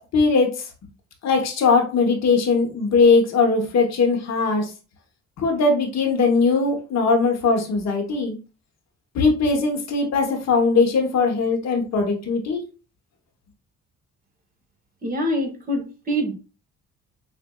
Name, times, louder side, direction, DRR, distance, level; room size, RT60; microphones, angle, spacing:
voice 1, 0.1-0.7 1.2-4.7 5.4-8.4 9.1-12.6, left 4 dB, 60° left, 3 dB, 1.0 m, -20 dB
voice 2, 15.0-16.3, equal, 30° right, 2 dB, 1.2 m, -25 dB
5.0 x 2.5 x 2.2 m, 0.33 s
cardioid pair, 90°, 30 cm